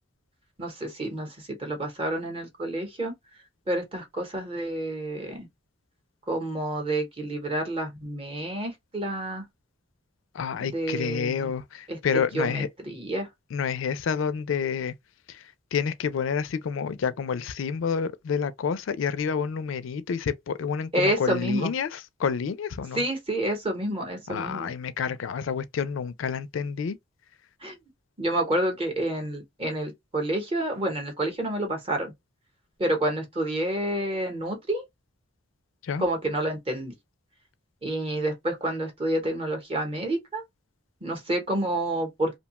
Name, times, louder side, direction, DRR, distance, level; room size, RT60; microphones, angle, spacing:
voice 1, 0.6-3.1 3.7-5.5 6.3-9.4 10.6-11.5 11.9-12.0 12.3-13.3 20.9-21.7 22.9-24.7 27.6-27.8 28.2-32.1 32.8-34.8 36.0-36.9 37.8-40.4 41.0-42.4, right 1 dB, 25° right, 0.8 m, -29 dB
voice 2, 10.3-12.7 13.5-14.9 15.3-15.4 15.7-23.0 24.3-27.0 35.8-36.0, left 6 dB, 75° left, 0.4 m, -29 dB
2.7 x 2.2 x 2.8 m
head